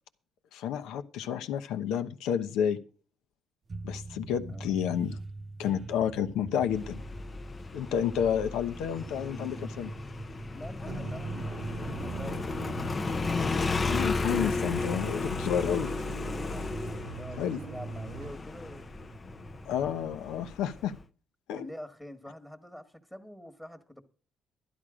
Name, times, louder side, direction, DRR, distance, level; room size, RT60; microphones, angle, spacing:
voice 1, 0.5-2.8 3.8-5.2 5.6-7.0 7.7-9.9 13.8-15.9 17.4-17.6 19.7-20.9 21.5-21.6, left 9 dB, 85° left, 1.0 m, -30 dB
sound 1, 3.7-20.5, right 2 dB, 30° right, 0.6 m, -44 dB
Motorcycle, 6.7-21.0, left 4 dB, 25° left, 0.6 m, -34 dB
voice 2, 10.5-13.2 16.4-18.9 21.5-24.0, left 1 dB, 5° left, 1.4 m, -46 dB
sound 2, 10.9-18.3, right 6 dB, 80° right, 1.0 m, -41 dB
12.5 x 10.5 x 5.0 m
cardioid pair, 110°, 0 cm